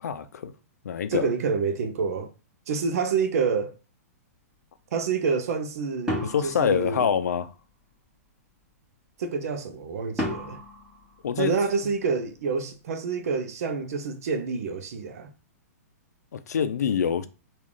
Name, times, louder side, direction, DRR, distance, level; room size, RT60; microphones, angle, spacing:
voice 1, 0.0-0.5 0.8-1.3 6.2-7.5 11.2-11.6 16.3-17.3, left 7 dB, 90° left, 0.5 m, -25 dB
voice 2, 1.1-2.3 2.7-3.8 4.9-7.1 9.2-10.6 11.4-15.3, right 5 dB, 65° right, 0.7 m, -28 dB
sound 1, 6.1-7.6 10.2-12.0, left 1 dB, 10° right, 1.2 m, -34 dB
3.2 x 2.5 x 3.7 m
hypercardioid pair, 145°, 9 cm